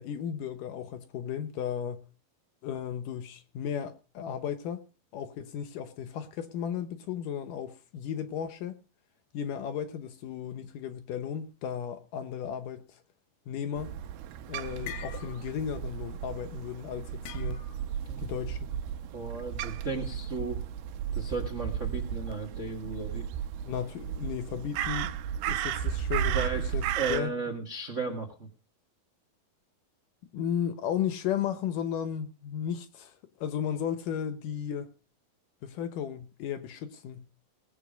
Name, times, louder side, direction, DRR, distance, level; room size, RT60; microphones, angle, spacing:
voice 1, 0.0-2.0 2.6-4.8 5.1-8.8 9.3-13.0 13.5-13.9 14.5-17.6 18.2-18.6 23.7-25.1 25.4-27.3 30.3-34.9 35.6-37.3, left 9 dB, 70° left, 2.3 m, -35 dB
Crow, 13.8-27.2, right 9 dB, 85° right, 2.7 m, -34 dB
sound 1, 14.0-14.3 14.6-15.7 16.0-16.2 17.2-17.9, left 10 dB, 90° left, 3.2 m, -44 dB
voice 2, 19.1-20.6 21.1-23.3 26.3-26.6 27.0-28.5, right 4 dB, 40° right, 1.1 m, -35 dB
19.5 x 7.9 x 5.1 m
omnidirectional pair, 4.3 m